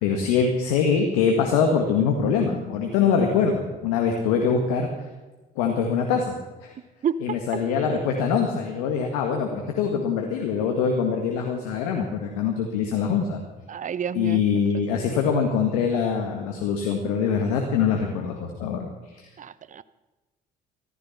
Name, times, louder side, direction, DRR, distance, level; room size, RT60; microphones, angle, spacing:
voice 1, 0.0-4.9 5.5-6.3 6.6-6.7 7.2-13.4 14.1-19.3, left 6 dB, 80° left, 3 dB, 1.8 m, -23 dB
voice 2, 13.7-14.4 19.4-19.8, right 8 dB, 40° right, 17 dB, 0.8 m, -29 dB
15.0 x 14.0 x 5.9 m, 1.2 s
hypercardioid pair, 60°, 20 cm